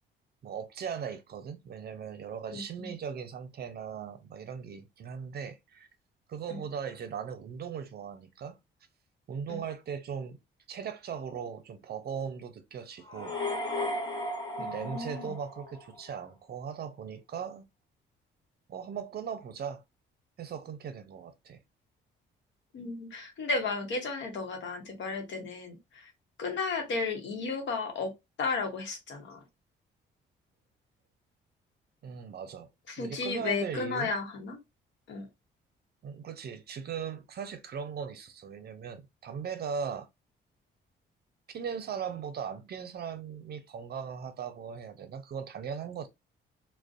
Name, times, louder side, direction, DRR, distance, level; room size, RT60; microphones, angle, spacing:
voice 1, 0.4-5.9 6.3-8.6 9.3-10.4 10.7-13.4 14.6-17.6 18.7-19.8 20.4-21.6 32.0-32.7 33.0-34.1 36.0-40.1 41.5-46.1, right 7 dB, 55° right, 0.6 m, -38 dB
voice 2, 2.5-2.9 6.5-6.6 9.5-9.6 14.6-15.3 22.7-26.1 26.4-28.1 28.4-29.4 32.9-34.6 35.1-35.3, left 4 dB, 65° left, 0.9 m, -34 dB
sound 1, 13.0-16.1, left 1 dB, 20° left, 0.9 m, -35 dB
2.5 x 2.1 x 2.4 m
cardioid pair, 90°, 20 cm